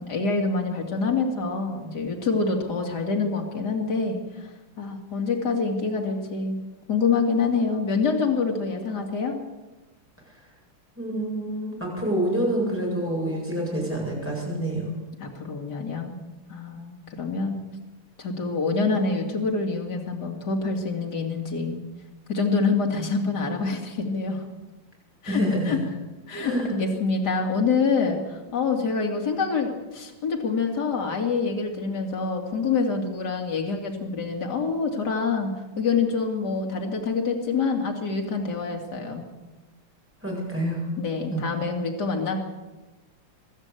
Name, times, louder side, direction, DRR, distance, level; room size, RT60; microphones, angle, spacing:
voice 1, 0.0-4.2 4.8-6.6 6.9-9.4 15.2-16.2 16.5-17.6 18.2-21.8 22.3-24.4 25.2-25.4 25.7-25.8 26.3-39.3 41.0-42.4, left 4 dB, 50° left, 1 dB, 3.2 m, -26 dB
voice 2, 11.0-14.9 25.3-25.8 26.4-26.7 40.2-40.9 41.3-41.5, right 1 dB, 5° right, -3 dB, 7.6 m, -27 dB
25.0 x 12.5 x 8.3 m, 1.1 s
omnidirectional pair, 2.4 m